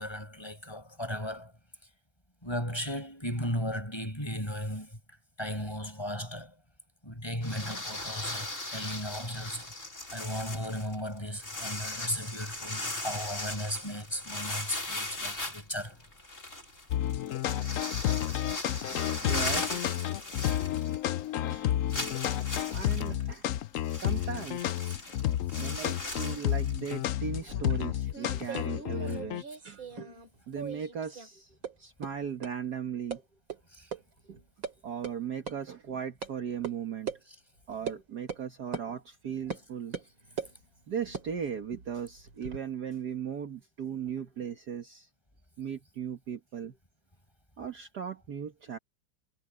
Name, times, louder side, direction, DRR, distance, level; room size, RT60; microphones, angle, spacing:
voice 1, 0.0-1.5 2.4-5.0 5.4-6.6 7.0-9.7 10.1-16.0 21.0-21.1 24.9-25.1 25.5-25.7 29.0-29.2 33.7-33.9 37.3-37.4, equal, 10° left, 6.6 m, -36 dB
sound 1, 7.4-21.2 21.5-21.6 21.9-27.1, left 2 dB, 35° left, 6.0 m, -38 dB
sound 2, 16.9-29.4, left 12 dB, 85° left, 0.7 m, -31 dB
voice 2, 18.8-20.1 21.5-21.7 22.7-23.5 23.9-24.8 25.5-29.8 30.5-33.2 34.3-34.4 34.8-37.1 37.7-40.0 40.9-45.1 45.6-46.8 47.6-48.8, right 7 dB, 55° right, 1.9 m, -38 dB
sound 3, 27.5-30.3 30.5-31.3 31.6-31.7 32.0-32.1 32.4-32.5 33.1-33.2 33.5-33.6 33.9-34.0 34.3-34.7 35.0-35.1 35.5-35.6 36.2-36.3 36.6-36.7 37.1-37.2 37.9-38.0 38.3-38.4 38.7-38.9 39.5-39.6 39.9-40.5 41.0-42.6, right 5 dB, 75° right, 5.0 m, -39 dB
omnidirectional pair, 2.2 m